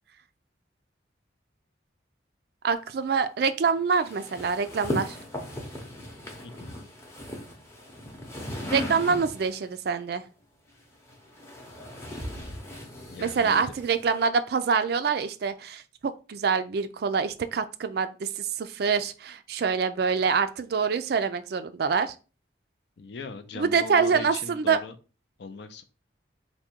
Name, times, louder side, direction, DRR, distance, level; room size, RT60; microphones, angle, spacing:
voice 1, 2.6-5.2 8.7-10.2 13.2-22.1 23.5-24.8, right 5 dB, 55° right, 11 dB, 0.3 m, -26 dB
sound 1, 4.0-9.6 10.7-14.2, left 1 dB, 15° left, 0.7 m, -37 dB
voice 2, 6.4-6.8 13.1-13.7 23.0-24.9 25.4-25.8, left 4 dB, 60° left, 9 dB, 0.4 m, -40 dB
3.5 x 2.2 x 4.3 m, 0.33 s
head